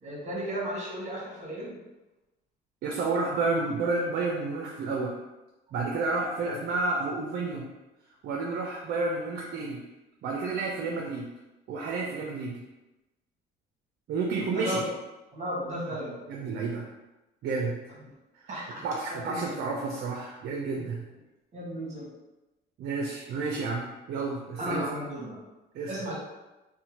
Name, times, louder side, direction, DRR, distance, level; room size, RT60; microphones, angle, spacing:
voice 1, 0.0-1.8 6.4-6.6 14.5-14.8 15.3-16.2 18.5-18.8 19.1-19.5 21.5-22.1 24.6-25.4 25.9-26.2, equal, 35° right, -4 dB, 1.0 m, -34 dB
voice 2, 2.8-5.2 5.7-7.7 8.2-9.8 10.2-11.3 11.7-12.6 14.1-14.8 16.0-16.9 17.4-17.8 18.4-18.5 18.8-21.0 22.8-24.9 25.7-25.9, right 3 dB, 50° right, -1 dB, 0.4 m, -30 dB
2.6 x 2.1 x 2.9 m, 1.0 s
cardioid pair, 120°, 21 cm